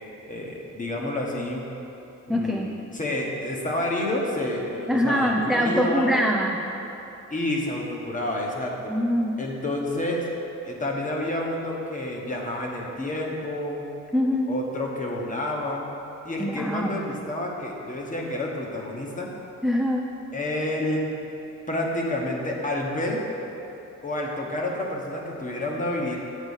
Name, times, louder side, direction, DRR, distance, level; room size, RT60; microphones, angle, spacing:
voice 1, 0.2-1.7 2.3-6.2 7.3-8.9 9.4-10.3 10.6-13.8 14.5-15.8 16.2-19.3 20.3-21.1 21.7-23.2 24.0-26.2, left 1 dB, 25° left, -1 dB, 1.3 m, -29 dB
voice 2, 2.3-2.7 4.9-6.6 8.9-9.3 14.1-14.5 16.4-17.0 19.6-20.0, equal, ahead, 0 dB, 0.4 m, -23 dB
8.2 x 5.2 x 7.2 m, 3.0 s
wide cardioid pair, 140°, 30 cm